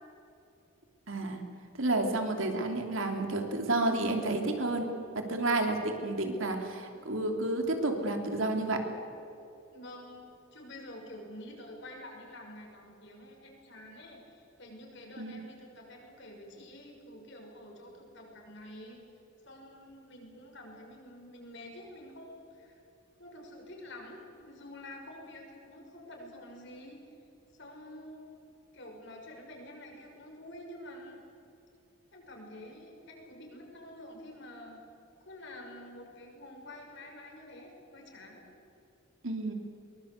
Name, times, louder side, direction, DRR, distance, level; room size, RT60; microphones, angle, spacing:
voice 1, 1.1-1.4 1.7-4.8 5.1-8.8 15.2-15.3 39.2-39.5, right 2 dB, 65° right, 4 dB, 3.0 m, -30 dB
voice 2, 9.7-19.0 19.4-22.8 23.2-27.0 27.6-28.4 28.7-31.2 32.1-34.8 35.2-38.4, left 1 dB, 55° left, 0 dB, 6.2 m, -48 dB
23.0 x 21.5 x 8.2 m, 3.0 s
head